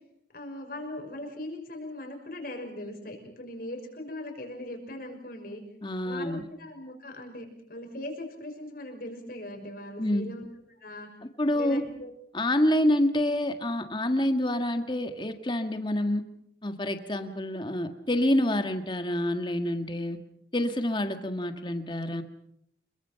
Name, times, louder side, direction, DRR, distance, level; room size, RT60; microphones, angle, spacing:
voice 1, 0.3-5.6 6.1-10.5 10.8-11.1 11.5-12.1, left 1 dB, 55° left, 4 dB, 5.8 m, -39 dB
voice 2, 5.8-6.5 10.0-10.3 11.4-11.8 12.3-16.2 16.6-20.2 20.5-22.2, left 1 dB, 25° left, 7 dB, 1.6 m, -27 dB
27.5 x 23.0 x 5.8 m, 0.77 s
head